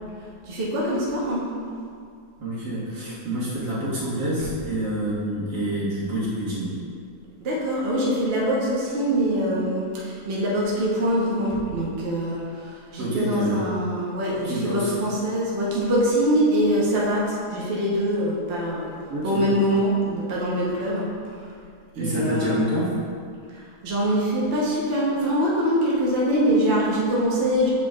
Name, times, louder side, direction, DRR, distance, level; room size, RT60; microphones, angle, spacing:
voice 1, 0.4-1.5 7.4-18.9 19.2-21.1 21.9-22.7 23.5-27.7, equal, 45° right, -5 dB, 1.1 m, -24 dB
voice 2, 2.4-6.7 13.0-13.7 14.4-14.9 19.1-19.5 22.0-22.9, right 1 dB, 85° right, -9 dB, 2.3 m, -27 dB
8.2 x 5.0 x 2.4 m, 2.2 s
omnidirectional pair, 1.7 m